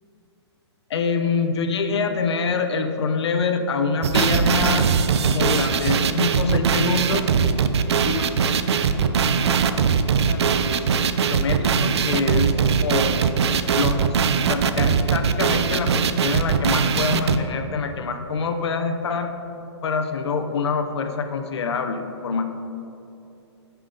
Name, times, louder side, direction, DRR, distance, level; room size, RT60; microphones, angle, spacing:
voice 1, 0.9-4.9 5.2-7.3 8.0-9.8 10.3-10.8 11.2-13.2 13.7-14.2 14.5-19.3 19.8-22.4, left 5 dB, 70° left, 6 dB, 0.7 m, -26 dB
sound 1, 4.0-17.4, right 6 dB, 70° right, 0.5 m, -20 dB
8.8 x 5.7 x 3.7 m, 2.8 s
hypercardioid pair, 165°, 15 cm